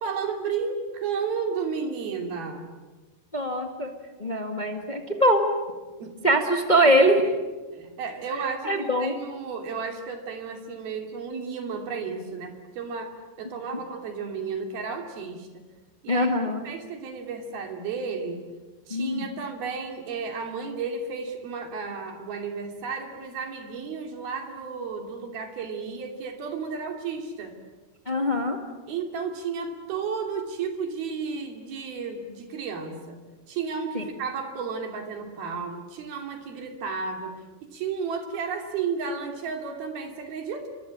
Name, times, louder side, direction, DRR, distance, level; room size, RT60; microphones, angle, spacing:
voice 1, 0.0-2.7 6.0-6.4 7.7-13.1 13.4-15.6 16.0-16.3 16.6-18.4 18.9-27.6 28.9-33.2 33.5-40.7, right 5 dB, 65° right, 5 dB, 4.6 m, -33 dB
voice 2, 3.3-3.9 4.2-5.5 6.2-7.4 8.6-9.1 16.1-16.6 18.9-19.3 28.0-28.6 33.9-34.0, equal, 30° left, 4 dB, 0.7 m, -22 dB
27.0 x 24.0 x 8.8 m, 1.3 s
omnidirectional pair, 4.8 m